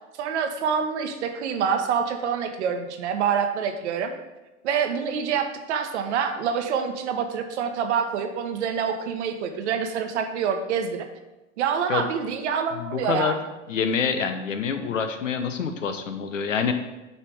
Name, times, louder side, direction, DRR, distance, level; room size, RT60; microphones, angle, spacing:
voice 1, 0.2-4.1 4.6-11.1 11.6-13.4, right 7 dB, 65° right, 6 dB, 1.1 m, -26 dB
voice 2, 12.7-13.4 13.7-16.7, left 6 dB, 85° left, 8 dB, 0.8 m, -26 dB
9.1 x 3.5 x 4.9 m, 1.1 s
hypercardioid pair, 90°, 37 cm